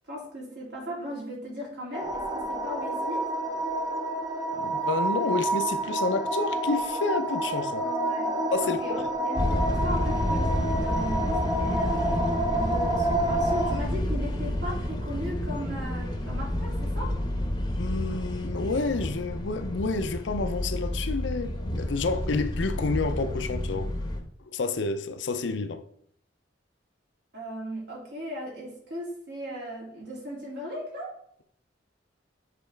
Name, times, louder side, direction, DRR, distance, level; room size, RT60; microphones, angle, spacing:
voice 1, 0.1-3.3 7.6-12.1 12.5-17.1 27.3-31.1, equal, 65° right, 2.8 m, -37 dB
sound 1, 1.9-13.8, right 1 dB, 20° right, 0.6 m, -29 dB
voice 2, 4.6-7.8 8.5-9.0 17.8-23.9 24.5-25.8, left 3 dB, 70° left, 0.6 m, -29 dB
sound 2, 9.3-24.2, left 1 dB, 25° left, 0.8 m, -30 dB
7.6 x 4.1 x 3.4 m
head